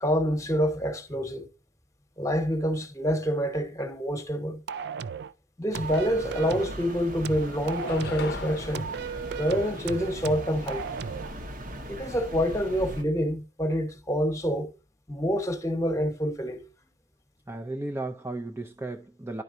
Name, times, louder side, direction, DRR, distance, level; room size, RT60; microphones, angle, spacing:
voice 1, 0.0-1.5 2.2-4.6 5.6-8.9 9.4-10.9 11.9-14.7 15.1-16.6, equal, 15° left, 1.2 m, -27 dB
sound 1, 4.7-5.3 5.7-6.8 7.2-8.3 8.7-11.3, right 6 dB, 60° right, 0.3 m, -35 dB
sound 2, 5.7-13.0, equal, 45° right, 1.0 m, -40 dB
sound 3, 6.0-6.1 6.4-7.2 7.6-10.2, left 4 dB, 60° left, 0.7 m, -41 dB
voice 2, 17.5-19.4, right 2 dB, 15° right, 0.5 m, -34 dB
11.0 x 4.6 x 2.7 m
head